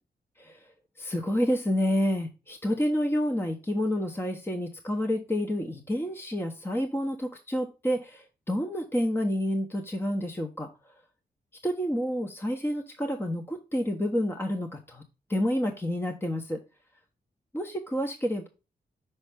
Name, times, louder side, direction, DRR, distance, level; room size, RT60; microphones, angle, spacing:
voice 1, 0.4-0.7 1.0-10.7 11.6-15.0 15.3-16.6 17.5-18.5, equal, 15° left, 4 dB, 0.8 m, -29 dB
5.5 x 5.2 x 3.4 m, 0.30 s
cardioid pair, 80°, 17 cm